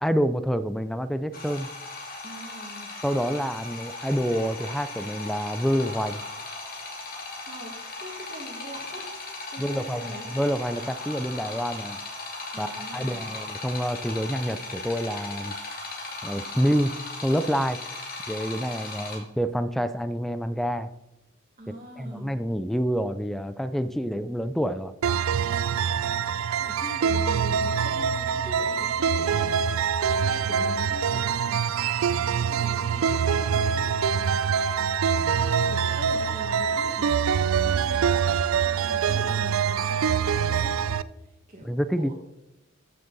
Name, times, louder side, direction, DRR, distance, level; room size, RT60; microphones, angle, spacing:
voice 1, 0.0-1.7 3.0-6.2 9.6-12.0 12.6-15.6 16.2-16.9 17.2-17.8 18.3-20.9 21.7-24.9 41.6-42.1, equal, ahead, 12 dB, 0.3 m, -27 dB
sound 1, 1.3-19.2, left 3 dB, 45° left, 2.5 m, -37 dB
voice 2, 2.2-2.9 7.5-9.1 9.5-10.3 12.5-13.2 21.6-22.3 26.3-29.6 29.9-33.9 35.7-38.3 38.6-42.1, equal, 35° right, -4 dB, 1.7 m, -42 dB
sound 2, 25.0-41.0, right 7 dB, 85° right, 0.4 m, -25 dB
14.0 x 6.5 x 4.0 m, 0.93 s
head